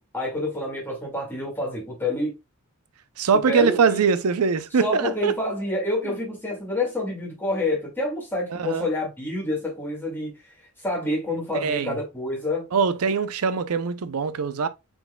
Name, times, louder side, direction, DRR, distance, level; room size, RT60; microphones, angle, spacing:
voice 1, 0.0-2.3 3.5-4.0 4.8-10.3 10.8-12.7, left 1 dB, 10° left, 1.9 m, -28 dB
voice 2, 3.2-5.3 8.5-8.9 11.6-12.0 12.7-14.7, right 5 dB, 75° right, 0.5 m, -22 dB
4.6 x 3.9 x 2.2 m
head